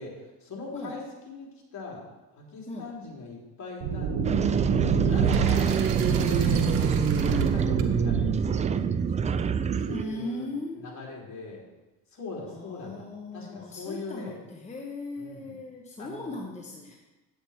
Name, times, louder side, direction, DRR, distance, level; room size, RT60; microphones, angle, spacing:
voice 1, 0.0-2.0 2.3-4.6 5.1-6.6 7.1-10.5 10.8-11.6 12.1-13.1 13.3-14.4 15.2-15.6 16.0-16.4, left 3 dB, 40° left, -3 dB, 3.4 m, -41 dB
sound 1, 3.8-8.8, right 6 dB, 75° right, 1.3 m, -27 dB
sound 2, 4.2-10.0, right 6 dB, 20° right, 0.3 m, -26 dB
voice 2, 5.0-6.8 9.9-10.9 12.5-17.0, left 2 dB, 15° left, 0 dB, 1.1 m, -38 dB
sound 3, 5.2-9.3, right 7 dB, 55° right, 1.2 m, -39 dB
9.7 x 7.9 x 4.3 m, 1.1 s
supercardioid pair, 95°, 42 cm